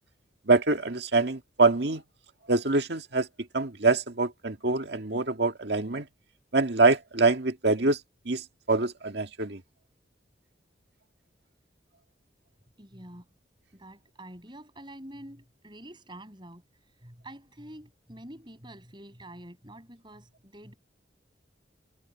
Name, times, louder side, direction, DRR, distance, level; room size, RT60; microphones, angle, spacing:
voice 1, 0.5-2.0 2.5-3.3 3.5-6.1 6.5-8.0 8.3-9.6, right 3 dB, 65° right, 1.9 m, -25 dB
voice 2, 12.8-13.3 13.7-20.7, right 1 dB, 25° right, 7.5 m, -47 dB
head